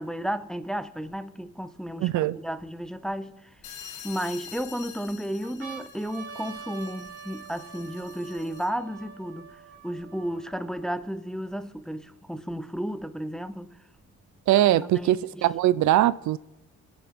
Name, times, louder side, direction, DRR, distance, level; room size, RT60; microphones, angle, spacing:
voice 1, 0.0-3.4 4.0-9.6 9.8-13.7 14.7-15.4, equal, ahead, 0.6 m, -33 dB
sound 1, 1.1-1.2 1.9-3.1 3.8-4.6 5.1-5.2 5.4-11.1 11.8-11.9 12.0-13.0 14.0-15.0, right 6 dB, 40° right, 4.0 m, -46 dB
voice 2, 2.0-2.4 14.5-16.4, right 13 dB, 70° right, 0.5 m, -21 dB
sound 2, 3.6-8.9, left 8 dB, 80° left, 1.5 m, -46 dB
25.0 x 8.8 x 3.6 m
cardioid pair, 90°, 30 cm